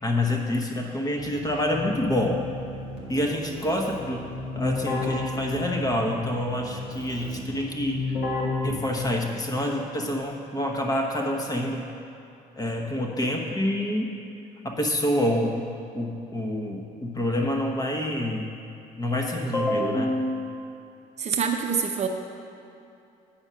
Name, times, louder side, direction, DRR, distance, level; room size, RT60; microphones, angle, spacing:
voice 1, 0.0-2.4 3.1-4.3 4.5-8.0 8.6-11.9 12.6-14.2 14.6-18.5 19.0-20.4, left 1 dB, 20° left, 1 dB, 1.0 m, -27 dB
Keyboard (musical), 1.2-9.5, left 2 dB, 85° left, 1.6 m, -33 dB
voice 2, 21.2-22.1, right 6 dB, 40° right, 3 dB, 0.6 m, -26 dB
8.8 x 4.8 x 5.6 m, 2.8 s
cardioid pair, 110°, 17 cm